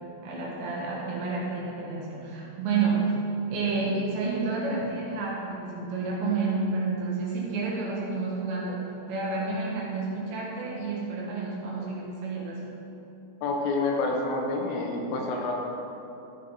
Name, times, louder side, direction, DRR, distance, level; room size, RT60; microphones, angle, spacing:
voice 1, 0.2-3.2 3.5-12.7, right 4 dB, 70° right, -4 dB, 3.0 m, -30 dB
voice 2, 13.4-15.5, left 3 dB, 85° left, 0 dB, 3.4 m, -28 dB
14.0 x 4.9 x 4.1 m, 2.9 s
omnidirectional pair, 5.9 m